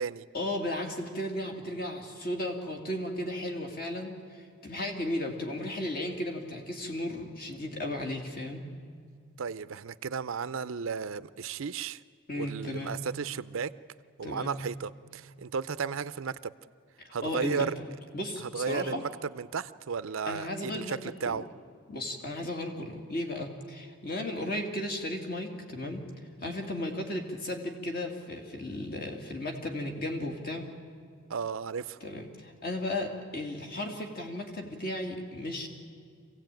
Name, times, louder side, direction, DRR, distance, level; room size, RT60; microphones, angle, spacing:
voice 1, 0.3-8.6 12.3-12.9 14.2-14.5 17.0-17.7 18.1-19.0 20.2-21.0 21.2-21.4 21.9-26.1 26.4-30.7 32.0-35.7, left 1 dB, 45° left, 3 dB, 2.4 m, -35 dB
voice 2, 9.4-12.0 12.4-13.7 14.2-16.5 17.1-17.7 18.4-21.4 31.3-32.0, right 6 dB, 75° right, 15 dB, 0.5 m, -34 dB
25.0 x 16.5 x 9.1 m, 2.1 s
head